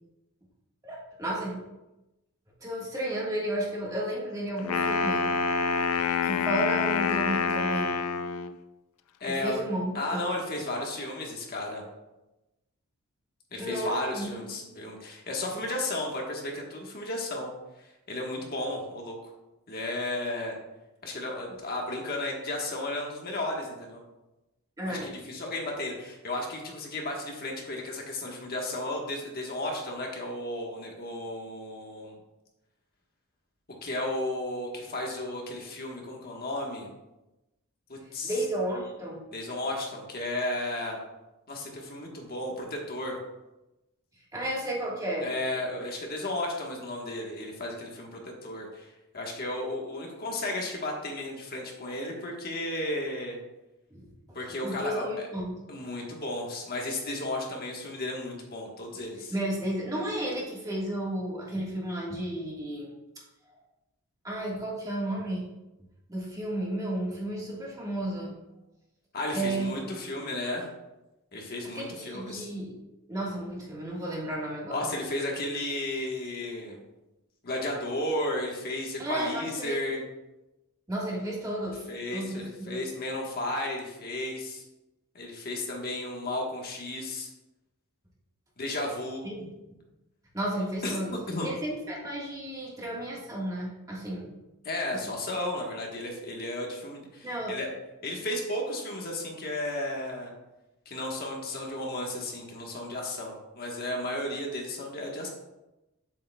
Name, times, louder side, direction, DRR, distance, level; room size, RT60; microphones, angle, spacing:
voice 1, 0.8-1.6 2.6-5.2 6.2-7.9 9.3-10.2 13.6-14.3 14.6-14.7 24.8-25.2 38.2-39.2 44.3-45.3 53.9-54.1 54.4-55.6 59.3-62.9 64.2-65.4 66.1-68.3 69.3-69.7 71.7-72.8 73.1-74.9 79.0-79.8 80.9-81.8 82.1-82.8 89.2-89.5 90.3-91.2 91.4-94.3 94.9-95.0 97.2-97.6, right 1 dB, 15° right, -3 dB, 1.5 m, -33 dB
Wind instrument woodwind instrument, 4.6-8.6, left 5 dB, 80° left, 0.4 m, -27 dB
voice 2, 9.2-9.6 9.9-11.8 13.5-17.5 17.8-19.3 19.7-20.6 21.0-24.0 24.8-32.2 33.8-36.9 37.9-38.3 39.3-41.0 41.5-43.2 45.2-53.4 54.3-55.3 55.7-59.3 69.1-70.7 71.3-72.5 74.7-76.8 77.4-80.0 81.9-84.6 85.1-87.3 88.6-89.3 90.8-90.9 91.3-91.5 94.6-97.7 98.0-100.3 100.8-105.3, left 1 dB, 45° left, 0 dB, 1.2 m, -34 dB
8.5 x 7.6 x 2.2 m, 0.99 s
head